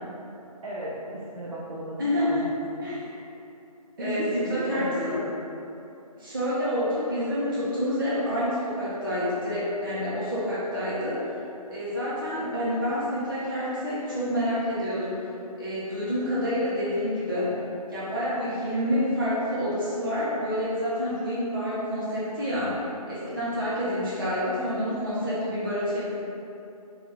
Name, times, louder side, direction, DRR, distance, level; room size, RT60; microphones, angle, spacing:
voice 1, 0.6-2.5 4.0-5.3, equal, 60° right, -8 dB, 0.8 m, -34 dB
voice 2, 2.0-2.5 2.8-3.1 4.0-5.2 6.2-11.2 11.7-15.3 15.6-17.5 17.9-22.8 23.1-26.1, equal, 35° right, -10 dB, 1.2 m, -28 dB
4.0 x 3.0 x 3.4 m, 2.8 s
hypercardioid pair, 175°, 20 cm